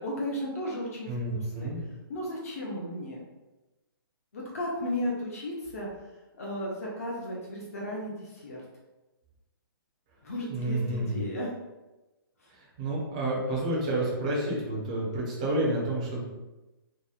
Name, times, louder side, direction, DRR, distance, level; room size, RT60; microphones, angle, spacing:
voice 1, 0.0-1.7 2.1-3.2 4.3-8.6 10.2-11.5 12.4-12.5, left 1 dB, 40° left, -3 dB, 0.4 m, -35 dB
voice 2, 1.1-1.8 10.5-11.2 12.8-16.2, right 1 dB, 20° right, -4 dB, 0.4 m, -29 dB
2.8 x 2.0 x 2.3 m, 1.1 s
hypercardioid pair, 175°, 13 cm